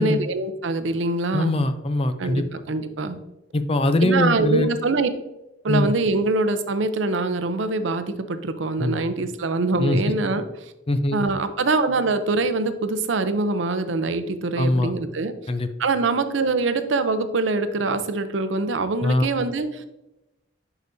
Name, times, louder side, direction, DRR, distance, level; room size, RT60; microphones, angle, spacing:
voice 1, 0.0-1.5 2.2-3.2 4.0-5.1 5.6-10.4 11.1-15.3 15.8-19.8, right 3 dB, 80° right, 10 dB, 0.6 m, -24 dB
voice 2, 1.3-2.4 3.5-4.7 5.7-5.9 8.8-9.0 9.8-10.0 10.9-11.2 14.6-14.9 15.5-15.7 19.0-19.3, left 1 dB, 30° left, 10 dB, 0.5 m, -22 dB
11.0 x 5.0 x 2.7 m, 0.95 s
head